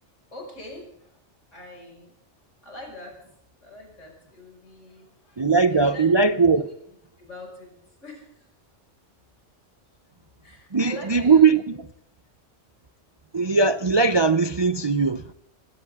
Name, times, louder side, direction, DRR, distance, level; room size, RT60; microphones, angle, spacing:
voice 1, 0.3-1.2 1.5-2.1 2.6-3.2 3.6-5.4 5.7-6.1 6.5-6.6 7.2-8.5 10.4-11.5, left 1 dB, 80° left, 6.2 m, -43 dB
voice 2, 5.4-6.6 10.7-11.6 13.3-15.2, right 4 dB, 40° right, 0.4 m, -19 dB
23.5 x 16.5 x 3.6 m
omnidirectional pair, 1.2 m